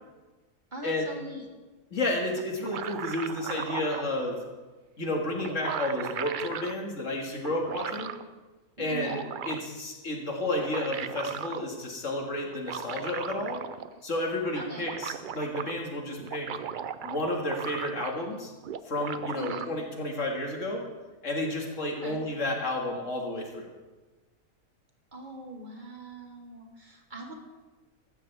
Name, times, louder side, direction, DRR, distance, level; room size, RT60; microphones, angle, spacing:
voice 1, 0.7-1.4 8.9-9.2 14.5-14.9 19.4-19.7 22.0-22.2 25.1-27.3, right 1 dB, 35° right, 2 dB, 1.5 m, -41 dB
voice 2, 1.9-4.4 5.0-8.1 8.8-13.6 14.0-16.5 17.0-18.5 18.8-20.8 21.2-23.7, left 1 dB, 65° left, 0 dB, 2.3 m, -31 dB
sound 1, 2.4-4.1 5.0-5.1 5.4-6.7 7.4-8.2 8.8-9.8 10.4-11.6 12.5-14.0 14.3-14.4 14.6-15.7 16.2-18.3 18.6-19.7, right 8 dB, 65° right, 0.5 m, -37 dB
15.5 x 13.0 x 3.4 m, 1.2 s
omnidirectional pair, 1.4 m